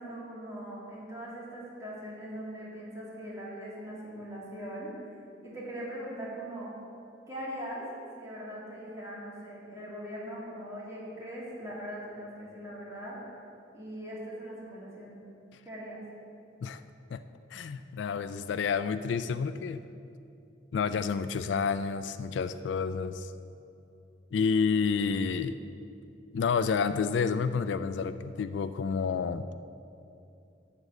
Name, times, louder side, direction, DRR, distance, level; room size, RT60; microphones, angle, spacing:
voice 1, 0.0-5.1 5.4-6.7 7.3-7.9 8.2-13.2 13.7-15.2 15.6-16.0, equal, 15° right, -7 dB, 2.4 m, -41 dB
voice 2, 17.5-19.8 20.7-23.3 24.3-25.6 26.3-29.5, left 5 dB, 65° left, 12 dB, 0.3 m, -29 dB
12.0 x 4.1 x 8.1 m, 2.6 s
head